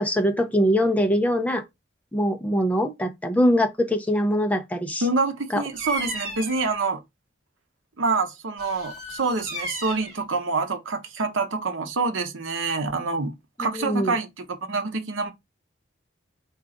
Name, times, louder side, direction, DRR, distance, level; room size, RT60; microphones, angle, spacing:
voice 1, 0.0-1.6 2.1-5.0 5.5-5.6 13.6-14.1, equal, 10° left, 0.5 m, -22 dB
voice 2, 5.0-7.0 8.0-13.3 13.6-15.3, right 3 dB, 90° right, 0.8 m, -26 dB
Bird vocalization bird call bird song, 5.7-6.7 8.6-10.2, right 1 dB, 55° right, 2.3 m, -34 dB
4.5 x 2.4 x 3.7 m
head